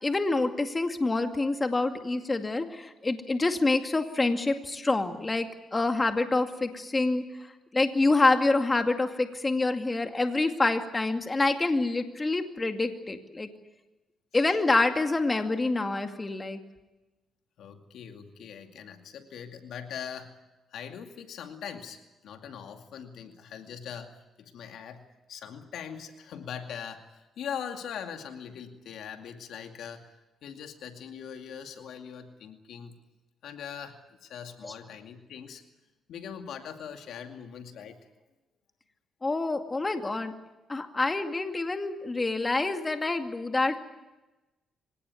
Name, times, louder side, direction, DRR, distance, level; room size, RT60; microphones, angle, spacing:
voice 1, 0.0-7.2 7.7-13.5 14.3-16.6 34.6-34.7 39.2-40.3 40.7-43.8, left 2 dB, 25° left, 6 dB, 2.3 m, -27 dB
voice 2, 17.6-20.3 20.7-24.1 24.4-25.0 25.3-33.0 33.4-35.6 36.1-38.0, left 8 dB, 75° left, 6 dB, 2.4 m, -41 dB
24.5 x 18.0 x 9.5 m, 1.1 s
cardioid pair, 85°, 0 cm